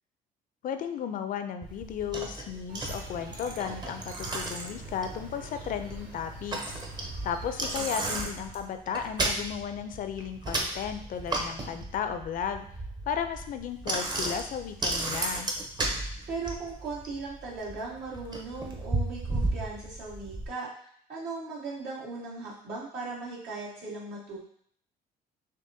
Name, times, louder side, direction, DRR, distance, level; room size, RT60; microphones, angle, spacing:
voice 1, 0.6-12.7 13.1-15.5, left 8 dB, 55° left, 8 dB, 0.4 m, -34 dB
Bicycle, 1.6-20.5, right 2 dB, 25° right, 0.7 m, -34 dB
sound 1, 2.7-8.3, right 1 dB, 55° right, 1.1 m, -46 dB
voice 2, 16.3-20.7 21.1-24.5, right 3 dB, 80° right, -6 dB, 1.6 m, -38 dB
6.3 x 2.2 x 2.6 m, 0.63 s
cardioid pair, 110°, 17 cm